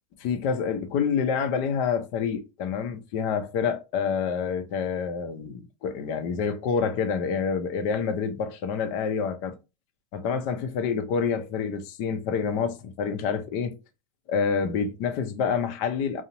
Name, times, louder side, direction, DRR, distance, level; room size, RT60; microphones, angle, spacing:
voice 1, 0.2-9.6 10.1-13.8 14.3-16.2, left 6 dB, 50° left, 0.5 m, -27 dB
2.6 x 2.0 x 2.9 m
hypercardioid pair, 120°, 17 cm